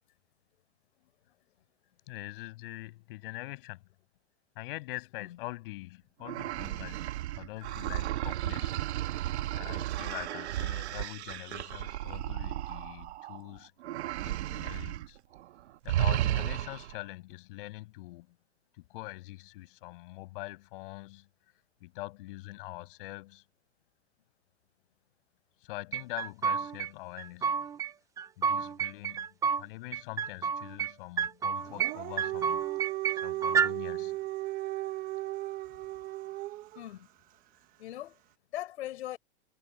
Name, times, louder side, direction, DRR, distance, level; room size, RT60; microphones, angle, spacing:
voice 1, 2.1-3.8 4.6-7.1 7.3-8.7 9.5-13.7 14.2-15.2 15.8-18.3 18.9-21.3 21.8-23.4 25.6-27.6 28.4-29.3 29.6-32.7 33.1-34.2, left 20 dB, 55° left, 6.4 m, -43 dB
sound 1, 6.2-13.4 13.8-15.1 15.3-15.5 15.9-17.0, right 13 dB, 80° right, 1.5 m, -33 dB
voice 2, 16.0-16.4 36.7-37.1 37.8-38.2 38.5-39.2, left 13 dB, 80° left, 4.4 m, -40 dB
sound 2, 25.9-26.9 27.2-27.9 28.2-29.6 29.9-30.9 31.2-33.7, right 6 dB, 10° right, 0.6 m, -30 dB
Dog, 31.6-36.8, right 17 dB, 25° right, 1.0 m, -36 dB
supercardioid pair, 160°, 33 cm